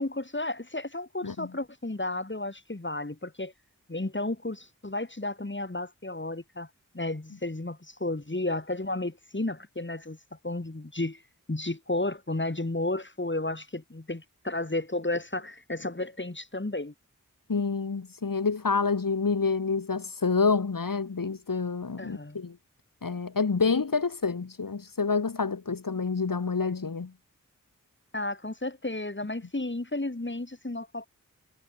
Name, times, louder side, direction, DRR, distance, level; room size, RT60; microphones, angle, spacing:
voice 1, 0.0-3.5 3.9-6.7 6.9-10.2 10.4-11.2 11.5-16.9 22.0-22.4 28.1-31.1, left 2 dB, 35° left, 4.9 m, -32 dB
voice 2, 17.5-22.6 23.0-27.1, left 4 dB, 85° left, 2.7 m, -28 dB
wide cardioid pair, 45°, 33 cm